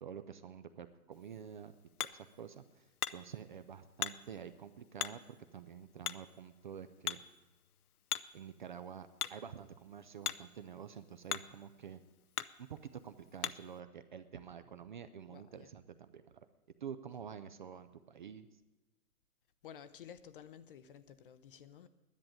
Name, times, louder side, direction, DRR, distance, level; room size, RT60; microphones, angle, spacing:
voice 1, 0.0-7.2 8.3-12.0 12.6-16.5 16.8-18.6, right 8 dB, 35° right, 0.4 m, -49 dB
Hammer, 1.1-13.8, left 10 dB, 75° left, 0.7 m, -45 dB
voice 2, 15.3-15.7 19.6-21.9, left 8 dB, 35° left, 0.6 m, -53 dB
10.5 x 9.3 x 8.8 m
hypercardioid pair, 135°, 45 cm